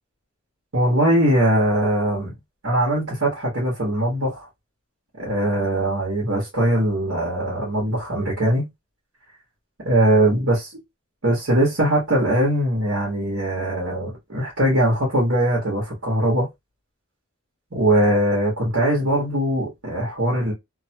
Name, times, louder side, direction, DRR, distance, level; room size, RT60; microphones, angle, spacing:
voice 1, 0.7-2.3 2.6-4.5 5.2-8.7 9.8-10.7 11.2-16.5 17.7-20.5, right 1 dB, 65° right, 1.5 m, -21 dB
3.0 x 2.2 x 2.8 m
head